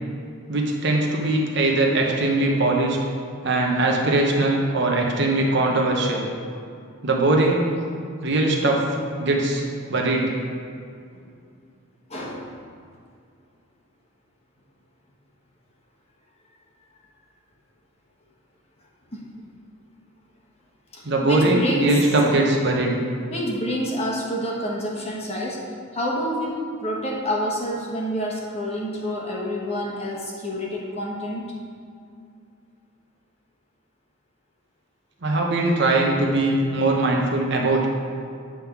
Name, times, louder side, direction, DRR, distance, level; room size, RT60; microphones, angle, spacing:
voice 1, 0.5-3.0 3.4-6.3 7.0-7.7 8.2-8.8 9.2-9.6 9.9-10.3 21.0-23.0 35.2-37.9, right 2 dB, 55° right, 0 dB, 1.0 m, -21 dB
voice 2, 12.1-12.4 19.1-19.2 20.9-22.0 23.2-25.6 25.9-31.5 35.6-35.8, equal, 30° left, -3 dB, 1.1 m, -28 dB
8.8 x 3.6 x 5.9 m, 2.4 s
head